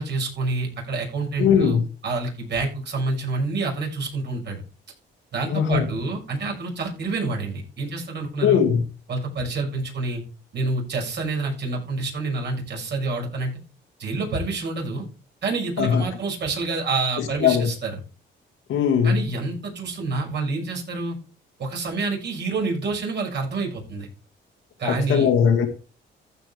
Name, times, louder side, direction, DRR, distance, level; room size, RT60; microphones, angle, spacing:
voice 1, 0.0-1.8 2.0-4.6 5.3-8.6 9.1-10.2 10.5-13.5 14.0-15.0 15.4-18.0 19.0-21.2 21.6-24.1 24.8-25.3, right 3 dB, 60° right, 6.4 m, -27 dB
voice 2, 1.4-1.8 5.5-5.9 8.4-8.8 15.8-16.0 17.2-17.7 18.7-19.2 24.9-25.7, left 7 dB, 85° left, 2.1 m, -19 dB
15.0 x 6.1 x 3.3 m
cardioid pair, 90°, 20 cm